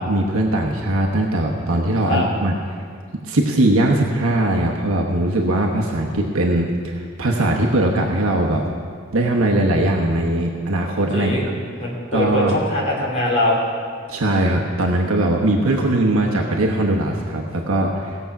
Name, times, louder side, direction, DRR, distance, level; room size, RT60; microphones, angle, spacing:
voice 1, 0.0-2.5 3.2-8.6 9.1-11.3 12.1-12.6 14.1-18.2, right 1 dB, 80° right, 0 dB, 1.0 m, -20 dB
voice 2, 11.1-11.5 11.8-13.6, left 1 dB, 30° left, -5 dB, 3.2 m, -22 dB
17.5 x 7.0 x 5.8 m, 2.1 s
head